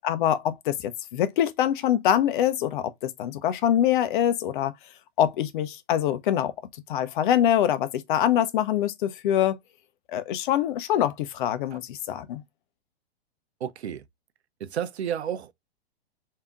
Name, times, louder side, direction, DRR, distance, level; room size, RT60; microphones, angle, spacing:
voice 1, 0.0-4.7 5.2-6.5 6.9-9.6 10.1-12.4, left 10 dB, 50° left, 0.6 m, -24 dB
voice 2, 13.6-14.0 14.6-15.6, right 9 dB, 90° right, 0.6 m, -31 dB
3.5 x 2.8 x 3.6 m
hypercardioid pair, 135°, 32 cm